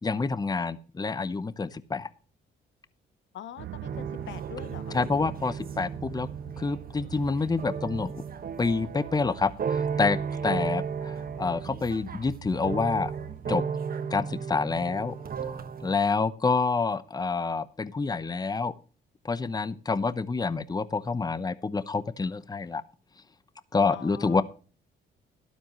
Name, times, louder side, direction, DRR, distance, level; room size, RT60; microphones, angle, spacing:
voice 1, 0.0-2.1 4.9-6.3 6.6-8.2 8.6-10.2 10.4-13.1 13.5-13.6 14.1-15.1 15.4-15.6 15.8-18.7 19.2-22.8 23.7-24.4, left 4 dB, 20° left, 0.8 m, -28 dB
voice 2, 3.3-5.0 23.9-24.4, left 10 dB, 70° left, 0.8 m, -43 dB
sound 1, 3.6-13.6, right 14 dB, 70° right, 0.5 m, -43 dB
sound 2, 3.8-7.2 7.6-12.3 12.5-15.9, right 6 dB, 50° right, 1.3 m, -34 dB
12.5 x 12.0 x 3.0 m
cardioid pair, 90°, 20 cm